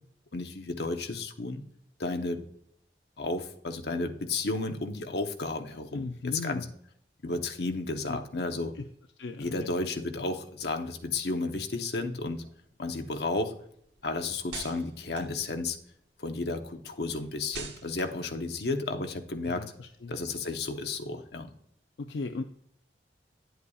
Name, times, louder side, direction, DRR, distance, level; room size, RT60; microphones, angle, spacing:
voice 1, 0.3-1.6 2.0-2.4 3.2-6.6 7.2-8.7 9.4-12.4 12.8-13.5 14.0-15.8 16.2-19.6 20.1-21.5, left 3 dB, 70° left, 5 dB, 0.9 m, -32 dB
voice 2, 5.9-6.7 8.1-8.2 8.7-8.8 9.2-9.7 12.9-13.0 19.4-20.2 22.0-22.4, left 3 dB, 85° left, 6 dB, 0.5 m, -37 dB
sound 1, 12.2-16.2 16.6-20.0, right 5 dB, 85° right, 1.3 m, -48 dB
9.8 x 8.0 x 2.3 m, 0.67 s
head